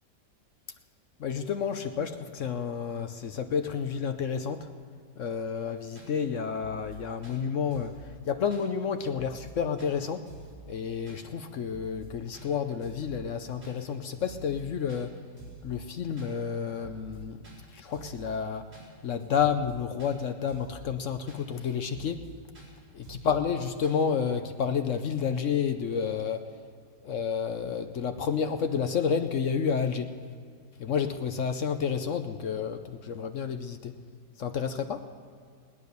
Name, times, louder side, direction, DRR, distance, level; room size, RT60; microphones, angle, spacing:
voice 1, 1.2-4.7 5.2-7.9 8.3-10.2 10.7-15.2 15.6-17.4 17.7-18.6 19.0-22.2 22.9-26.5 27.0-30.1 30.8-33.9 34.4-35.0, left 7 dB, 60° left, 8 dB, 0.8 m, -30 dB
sound 1, 5.4-5.5 5.9-6.1 6.4-7.0 7.2-7.4 7.7-8.0 8.5-8.7 9.0-9.5 9.8-9.9 10.3-10.6 11.1-11.2 11.5-12.1 12.3-12.5 12.8-13.1 13.6-13.8 14.1-14.6 14.9-15.0 15.4-15.7 16.2-16.3 16.6-17.2 17.4-17.6 17.9-18.2 18.7-18.9 19.2-19.7 20.0-20.1 20.5-20.8 21.3-21.4 21.7-22.3 22.5-22.7 23.0-23.3 23.8-24.0, right 4 dB, 40° right, 4.2 m, -48 dB
19.5 x 9.8 x 6.8 m, 2.3 s
omnidirectional pair, 1.9 m